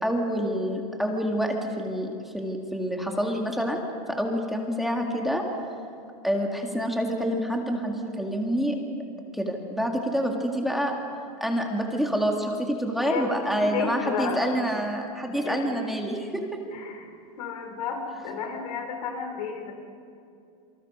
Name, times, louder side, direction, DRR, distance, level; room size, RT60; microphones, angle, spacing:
voice 1, 0.0-5.4 6.2-8.8 9.3-10.9 11.4-16.6, equal, ahead, 1 dB, 1.8 m, -27 dB
voice 2, 13.0-14.5 15.2-15.9 16.7-17.1 17.4-19.7, left 6 dB, 85° left, 3 dB, 5.2 m, -32 dB
28.0 x 25.0 x 5.4 m, 2.5 s
supercardioid pair, 165°, 19 cm